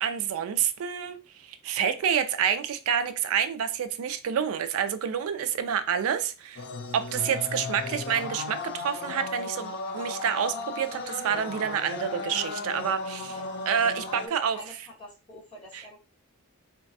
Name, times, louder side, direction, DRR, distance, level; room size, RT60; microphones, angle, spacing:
voice 1, 0.0-6.6 6.9-13.4 13.7-14.6 15.7-15.8, right 8 dB, 65° right, 0.3 m, -28 dB
sound 1, 6.6-14.3, left 3 dB, 50° left, 0.4 m, -35 dB
voice 2, 13.2-13.6 14.1-16.0, left 1 dB, 25° left, 1.9 m, -46 dB
3.9 x 2.2 x 2.6 m
head